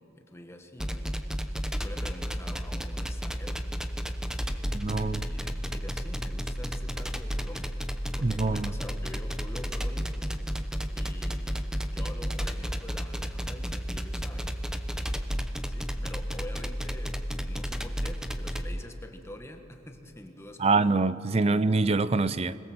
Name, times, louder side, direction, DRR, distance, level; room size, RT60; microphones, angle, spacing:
voice 1, 0.2-1.2 1.5-3.7 4.4-7.8 8.2-10.2 10.9-14.6 15.7-20.8 21.5-21.6, left 1 dB, 15° left, 5 dB, 1.6 m, -46 dB
sound 1, 0.8-18.7, equal, 5° right, 1.0 m, -32 dB
voice 2, 4.7-5.3 8.2-8.7 20.6-22.6, right 3 dB, 30° right, 16 dB, 0.5 m, -25 dB
25.0 x 21.0 x 7.9 m, 2.7 s
head